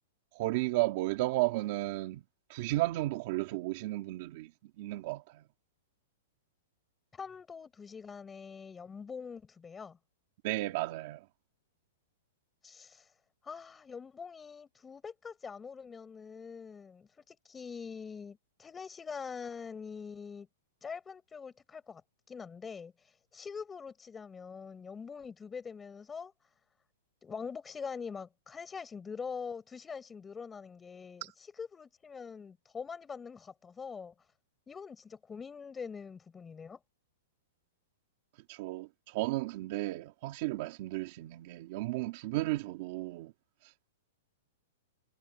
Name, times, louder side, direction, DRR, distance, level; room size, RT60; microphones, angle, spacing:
voice 1, 0.3-2.2 2.5-5.4 10.4-11.3 31.2-31.3 38.5-43.3 43.6-43.9, right 18 dB, 35° right, 2.2 m, -34 dB
voice 2, 7.1-10.0 12.6-13.1 13.4-20.5 20.8-22.0 22.3-22.9 23.3-26.3 27.2-31.3 31.6-34.1 34.7-36.8, left 6 dB, 10° left, 6.5 m, -44 dB
supercardioid pair, 175°, 0 cm